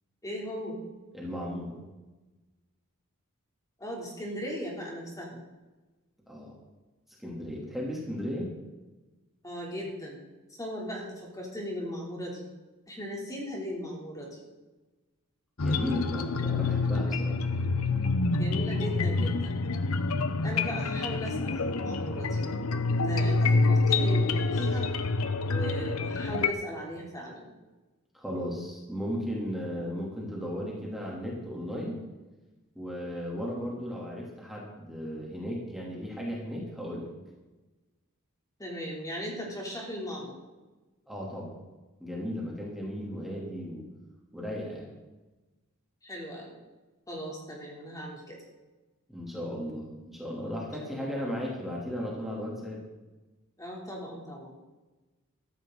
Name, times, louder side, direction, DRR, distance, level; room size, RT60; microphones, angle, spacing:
voice 1, 0.2-0.8 3.8-5.4 9.4-10.2 10.5-12.4 12.9-14.4 18.3-19.6 20.4-22.4 22.9-24.9 25.4-27.5 38.6-40.4 46.0-46.5 47.1-48.4 53.6-54.6, equal, 15° left, -2 dB, 3.4 m, -37 dB
voice 2, 1.1-1.8 6.3-6.5 7.2-8.5 15.6-17.4 28.1-31.9 32.7-37.1 41.1-41.6 42.0-43.9 44.3-44.9 49.1-52.8, equal, ahead, -4 dB, 3.2 m, -35 dB
sound 1, 15.6-26.5, left 3 dB, 70° left, 0.8 m, -27 dB
16.0 x 14.0 x 4.0 m, 1.1 s
head